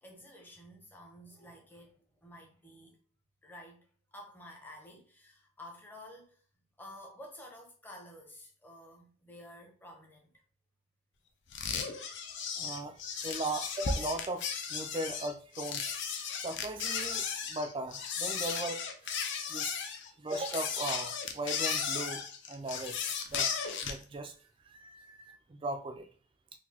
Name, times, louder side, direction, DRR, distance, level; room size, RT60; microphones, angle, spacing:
voice 1, 0.0-3.0 3.4-3.8 4.1-6.4 6.8-10.3, left 1 dB, 10° left, 0.6 m, -51 dB
sound 1, 11.5-24.0, left 6 dB, 55° left, 0.5 m, -35 dB
voice 2, 12.6-19.8 20.2-22.2 22.5-23.5 23.8-24.3 24.6-26.1, right 2 dB, 25° right, 0.3 m, -38 dB
3.9 x 2.6 x 2.8 m
head